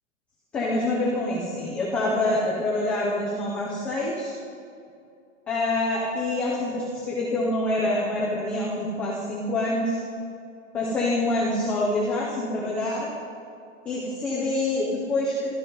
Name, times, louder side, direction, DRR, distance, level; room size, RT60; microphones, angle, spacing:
voice 1, 0.5-4.3 5.5-10.0 10.7-13.1 13.9-15.5, left 2 dB, 5° left, -5 dB, 0.4 m, -26 dB
20.5 x 13.0 x 5.3 m, 2.4 s
supercardioid pair, 170°, 39 cm